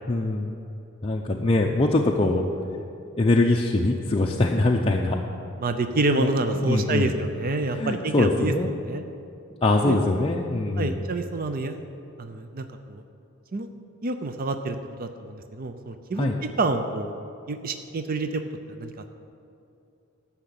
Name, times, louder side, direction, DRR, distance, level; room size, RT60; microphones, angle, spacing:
voice 1, 0.1-0.5 1.0-2.5 3.2-5.2 6.1-6.3 6.6-7.1 7.7-8.7 9.6-11.0 16.2-16.4, left 2 dB, 25° left, -1 dB, 0.6 m, -23 dB
voice 2, 5.6-9.0 9.8-10.0 10.8-11.8 12.2-13.0 13.5-13.7 14.0-16.3 16.6-17.1 17.5-18.4 18.7-18.9, right 2 dB, 45° right, 7 dB, 0.6 m, -27 dB
12.5 x 5.8 x 8.2 m, 2.7 s
head